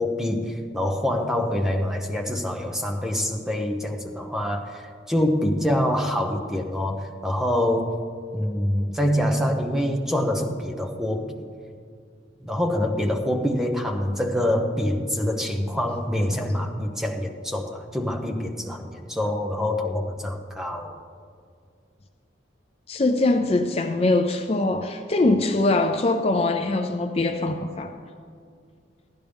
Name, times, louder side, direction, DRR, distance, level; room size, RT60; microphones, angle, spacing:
voice 1, 0.0-8.0 8.3-11.2 12.4-20.9, left 1 dB, 5° right, 2 dB, 0.9 m, -25 dB
voice 2, 22.9-27.9, left 2 dB, 35° left, 6 dB, 0.5 m, -22 dB
15.0 x 11.5 x 3.5 m, 2.3 s
head